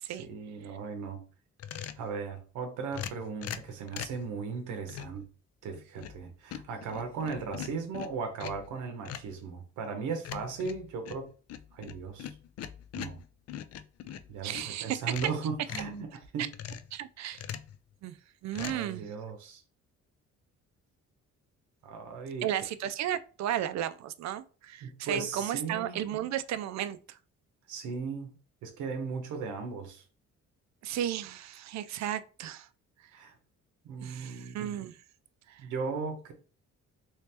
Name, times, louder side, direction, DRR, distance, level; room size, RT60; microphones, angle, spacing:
voice 1, 0.1-1.2 2.0-5.2 5.6-11.3 11.7-12.3 12.9-13.2 14.3-16.5 18.6-19.6 21.8-22.5 24.8-26.0 27.7-30.0 33.1-33.3 33.8-34.8 35.6-36.3, right 5 dB, 90° right, 0.8 m, -37 dB
sound 1, 1.6-2.1 2.9-4.2 4.9-5.2 5.7-6.2 6.5-8.7 9.1-9.4 10.2-14.7 15.0-16.0 16.5-16.9 17.3-17.8 18.5-18.8, left 9 dB, 55° left, 0.4 m, -41 dB
voice 2, 14.4-15.0 16.9-17.4 18.0-18.2 18.4-19.1 22.4-27.2 30.8-32.7 34.0-35.0 35.5-35.6, right 11 dB, 65° right, 0.4 m, -34 dB
3.1 x 2.9 x 3.3 m
cardioid pair, 90°, 30 cm